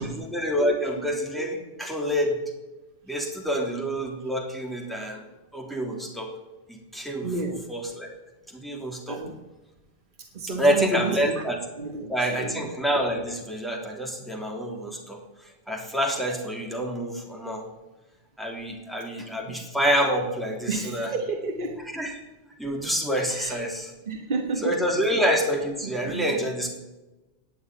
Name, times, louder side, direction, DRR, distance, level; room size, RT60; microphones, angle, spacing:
voice 1, 0.0-2.4 3.0-5.2 5.5-6.3 6.7-7.3 7.7-8.1 8.5-9.2 10.6-11.6 12.1-15.2 15.7-17.6 18.4-21.1 21.9-22.2 22.6-23.9 24.6-26.7, equal, ahead, 0 dB, 3.4 m, -27 dB
voice 2, 7.2-7.6 9.1-9.3 10.3-11.4 11.8-12.6 19.5-19.6 20.7-21.8 23.3-23.6 24.1-24.7 25.0-25.2 26.0-26.3, right 3 dB, 50° right, 3 dB, 1.6 m, -31 dB
19.5 x 7.1 x 9.4 m, 1.1 s
omnidirectional pair, 1.1 m